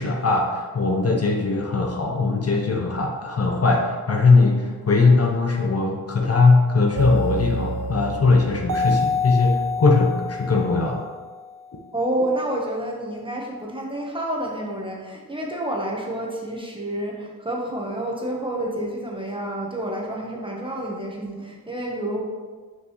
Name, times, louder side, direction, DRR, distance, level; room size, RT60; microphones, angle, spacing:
voice 1, 0.0-11.1, left 3 dB, 40° left, 1 dB, 0.9 m, -20 dB
sound 1, 7.0-11.6, left 2 dB, 60° right, 0.7 m, -27 dB
voice 2, 11.9-22.2, right 1 dB, 15° right, -2 dB, 1.3 m, -29 dB
5.7 x 5.2 x 3.2 m, 1.4 s
cardioid pair, 70°, 35 cm